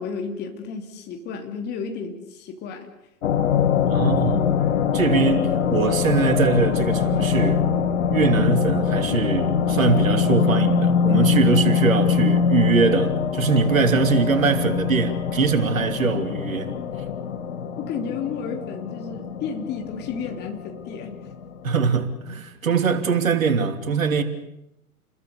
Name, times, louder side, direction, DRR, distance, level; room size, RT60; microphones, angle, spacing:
voice 1, 0.0-2.9 13.9-14.1 17.8-21.2, left 6 dB, 20° left, 3.2 m, -32 dB
sound 1, 3.2-21.9, left 6 dB, 50° left, 2.3 m, -23 dB
voice 2, 3.9-4.5 4.9-7.6 8.1-16.7 21.6-24.2, right 5 dB, 60° right, 3.0 m, -22 dB
30.0 x 21.5 x 6.9 m
figure-of-eight pair, 115°, 45 cm